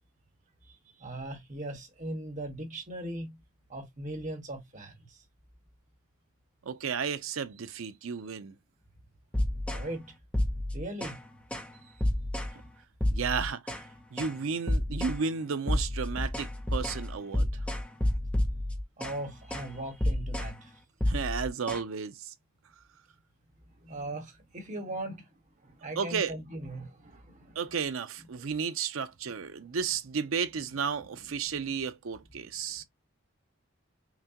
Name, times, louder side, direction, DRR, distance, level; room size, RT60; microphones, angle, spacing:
voice 1, 0.6-3.4 3.7-5.2 9.7-10.2 10.7-11.2 19.0-20.7 23.8-25.3 25.6-27.8 28.4-28.5 29.6-29.7, right 1 dB, 35° right, 1.3 m, -39 dB
voice 2, 6.7-8.5 13.1-13.7 14.1-17.5 21.1-22.3 26.0-26.3 27.6-32.8, right 6 dB, 70° right, 0.5 m, -33 dB
sound 1, 9.3-9.9 10.3-11.2 11.5-11.7 12.0-12.6 13.0-13.9 14.2-14.4 14.7-15.2 15.7-19.2 19.5-19.7 20.0-20.6 21.0-21.8, left 1 dB, 5° left, 0.7 m, -30 dB
5.8 x 2.2 x 2.8 m
head